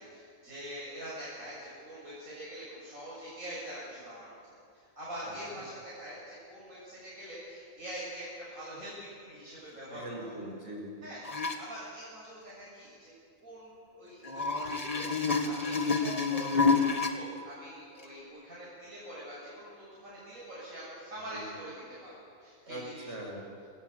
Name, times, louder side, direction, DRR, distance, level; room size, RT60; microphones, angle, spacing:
voice 1, 0.0-10.3 11.0-11.2 11.6-13.1 13.4-22.1 22.4-23.1, equal, 80° right, -7 dB, 7.7 m, -44 dB
voice 2, 5.2-5.6 9.9-11.0 21.3-21.4 22.7-23.4, right 1 dB, 55° right, 0 dB, 6.4 m, -42 dB
sound 1, 11.2-11.6 14.2-17.1 18.0-18.1, left 4 dB, 25° left, 1.9 m, -28 dB
29.5 x 19.0 x 8.6 m, 2.3 s
omnidirectional pair, 1.4 m